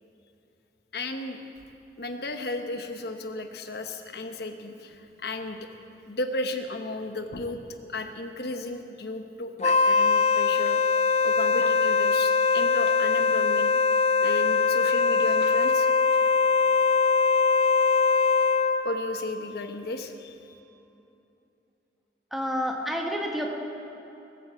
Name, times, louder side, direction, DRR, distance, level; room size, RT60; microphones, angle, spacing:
voice 1, 0.9-1.4 2.0-5.6 6.1-7.6 7.9-13.7 14.2-15.9 18.8-20.4, left 2 dB, 60° left, 6 dB, 1.1 m, -34 dB
Wind instrument woodwind instrument, 9.6-18.9, left 4 dB, 35° left, 0.6 m, -22 dB
voice 2, 22.3-23.5, equal, ahead, 0 dB, 1.6 m, -29 dB
20.0 x 9.0 x 7.8 m, 2.9 s
head